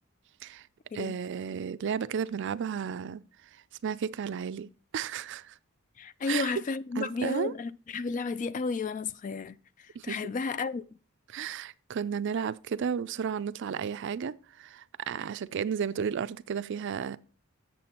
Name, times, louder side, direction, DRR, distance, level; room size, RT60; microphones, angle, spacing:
voice 1, 0.9-3.2 3.8-5.5 6.3-6.5 7.0-7.5 10.0-10.2 11.3-17.2, right 7 dB, 60° right, 0.4 m, -33 dB
voice 2, 6.0-9.6 10.0-10.8, left 4 dB, 40° left, 0.3 m, -32 dB
7.7 x 7.0 x 4.3 m
head